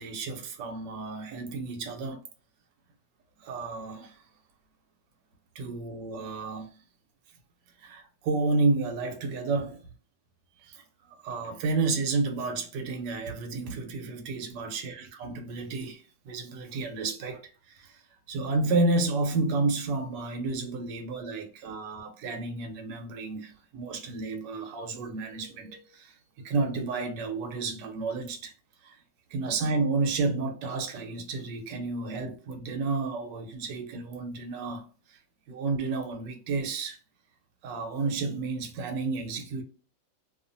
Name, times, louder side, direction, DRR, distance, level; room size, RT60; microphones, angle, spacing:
voice 1, 0.0-2.2 3.4-4.2 5.5-6.8 7.8-9.8 10.6-10.8 11.1-18.0 18.3-28.5 28.8-29.0 29.3-35.2 35.5-37.0 37.6-39.6, right 3 dB, 75° right, 1.3 m, -31 dB
2.8 x 2.4 x 2.5 m
omnidirectional pair, 2.0 m